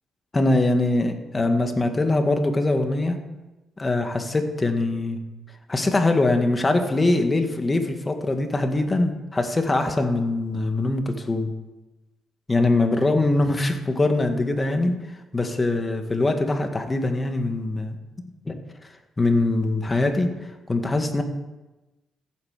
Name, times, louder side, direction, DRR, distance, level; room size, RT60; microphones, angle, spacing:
voice 1, 0.3-3.2 3.8-5.2 5.7-11.5 12.5-15.0 15.3-18.0 18.4-18.6 19.2-21.2, left 2 dB, 20° left, 5 dB, 2.0 m, -22 dB
14.5 x 9.3 x 6.7 m, 1.1 s
cardioid pair, 90°, 0 cm